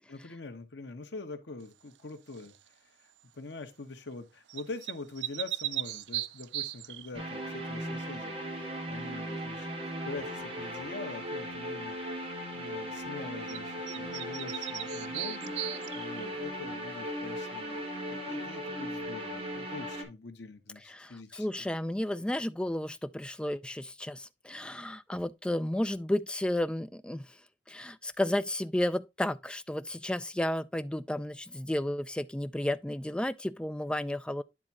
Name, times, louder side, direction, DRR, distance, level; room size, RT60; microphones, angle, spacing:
voice 1, 0.1-2.5 3.3-9.7 10.1-12.0 12.5-15.4 15.7-21.7, left 3 dB, 90° left, 1.2 m, -44 dB
sound 1, 2.3-2.7 4.5-7.1 13.5-13.6 13.9-16.3, right 15 dB, 85° right, 0.4 m, -37 dB
sound 2, 7.1-20.0, equal, 35° right, 2.1 m, -37 dB
voice 2, 20.9-27.3 27.7-34.4, left 1 dB, 5° left, 0.3 m, -32 dB
9.9 x 3.6 x 4.1 m
head